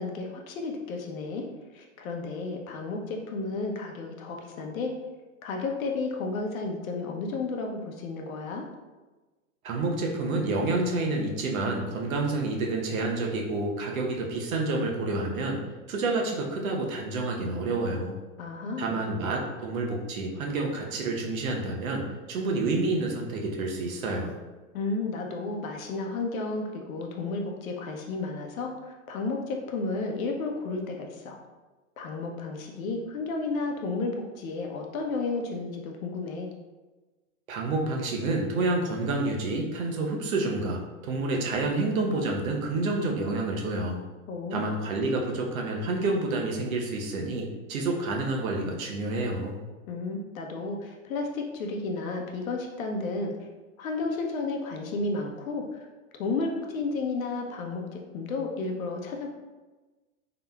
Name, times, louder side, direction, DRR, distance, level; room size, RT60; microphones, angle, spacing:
voice 1, 0.0-1.5 1.7-4.9 5.4-8.7 18.4-19.0 24.7-31.4 32.0-36.5 44.3-44.8 49.9-53.5 53.8-55.6 56.2-59.3, left 3 dB, 80° left, 2 dB, 0.9 m, -32 dB
voice 2, 9.6-15.6 15.9-18.1 18.8-24.3 37.5-44.0 44.5-49.6, right 2 dB, 75° right, 0 dB, 1.0 m, -29 dB
3.9 x 3.8 x 2.3 m, 1.2 s
hypercardioid pair, 105°, 41 cm